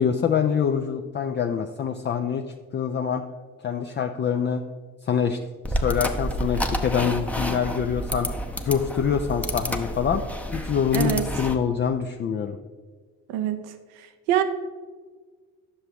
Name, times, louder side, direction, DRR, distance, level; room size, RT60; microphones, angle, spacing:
voice 1, 0.0-2.5 2.7-3.2 3.6-4.6 5.0-5.4 5.7-8.3 8.6-10.2 10.5-12.6, left 7 dB, 30° left, 4 dB, 0.5 m, -25 dB
sound 1, 5.6-11.6, equal, 5° left, 0.8 m, -29 dB
voice 2, 10.9-11.3 13.3-13.7 14.3-14.4, right 11 dB, 75° right, 9 dB, 0.8 m, -24 dB
9.8 x 6.7 x 2.9 m, 1.5 s
hypercardioid pair, 50°, 34 cm